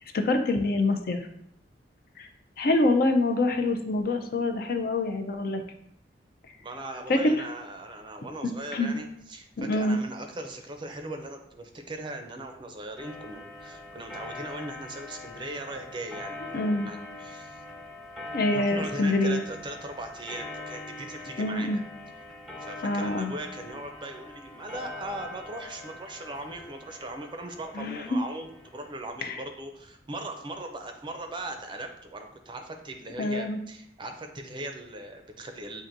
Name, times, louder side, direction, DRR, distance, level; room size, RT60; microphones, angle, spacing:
voice 1, 0.1-1.2 2.2-2.3 2.6-5.6 7.1-7.3 8.4-8.9 9.6-10.0 16.5-16.9 18.3-19.4 21.4-21.8 22.8-23.3 27.8-28.2 29.2-29.4 33.2-33.6, left 2 dB, 55° left, 5 dB, 0.5 m, -25 dB
voice 2, 6.6-17.6 18.5-21.8 22.6-35.8, right 2 dB, 25° right, 4 dB, 0.5 m, -39 dB
Clock, 13.0-29.1, left 2 dB, ahead, 0.7 m, -43 dB
7.3 x 2.6 x 2.6 m, 0.74 s
head